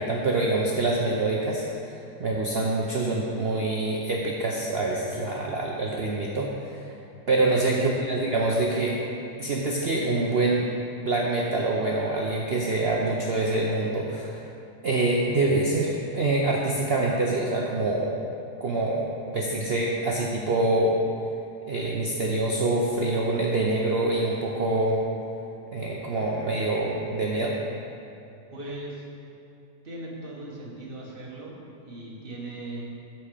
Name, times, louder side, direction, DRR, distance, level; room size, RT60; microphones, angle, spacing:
voice 1, 0.0-6.8 7.3-9.0 9.4-10.7 11.0-14.4 14.8-18.3 18.6-21.0 21.7-25.0 25.7-27.5, right 2 dB, 55° right, -2 dB, 0.7 m, -25 dB
voice 2, 7.5-8.0 28.5-29.0 29.8-32.8, right 1 dB, 35° right, -4 dB, 1.6 m, -38 dB
12.5 x 4.4 x 5.0 m, 2.7 s
omnidirectional pair, 1.8 m